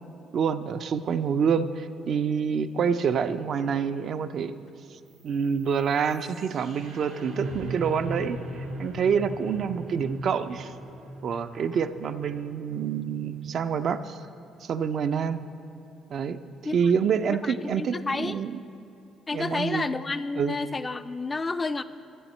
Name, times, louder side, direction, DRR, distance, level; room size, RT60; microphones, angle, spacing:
voice 1, 0.3-4.5 5.2-10.7 11.2-14.2 14.6-15.4 16.1-16.4 16.7-18.6 19.3-19.9 20.4-20.5, right 6 dB, 60° right, 10 dB, 0.3 m, -27 dB
sound 1, 5.1-15.1, right 1 dB, 80° right, 0.9 m, -40 dB
voice 2, 17.4-18.5 19.3-21.8, left 3 dB, 30° left, 12 dB, 0.3 m, -30 dB
9.9 x 7.6 x 4.3 m, 2.7 s
supercardioid pair, 60°, 0 cm